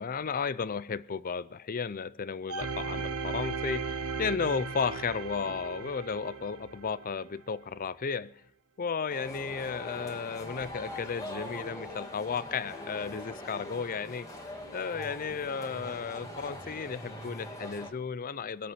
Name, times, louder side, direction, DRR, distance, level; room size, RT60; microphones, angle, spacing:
voice 1, 0.0-8.4 8.8-14.3 14.7-18.7, left 5 dB, 40° left, 18 dB, 0.5 m, -34 dB
sound 1, 2.5-7.3 7.8-7.9, right 5 dB, 75° right, 0.8 m, -37 dB
sound 2, 9.1-17.9, left 1 dB, 15° left, 2.2 m, -42 dB
21.5 x 8.3 x 5.7 m, 0.66 s
head